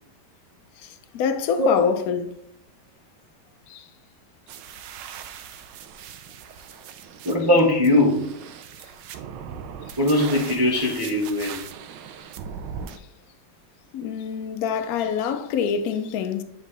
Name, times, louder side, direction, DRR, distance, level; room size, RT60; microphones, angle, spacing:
voice 1, 0.8-2.4 3.7-3.8 13.9-16.4, left 7 dB, 70° left, 0.9 m, -25 dB
sound 1, 4.5-13.0, right 7 dB, 75° right, 1.2 m, -39 dB
voice 2, 7.2-8.3 10.0-11.6, left 1 dB, 20° right, 0.7 m, -20 dB
7.3 x 4.1 x 3.3 m
omnidirectional pair, 2.1 m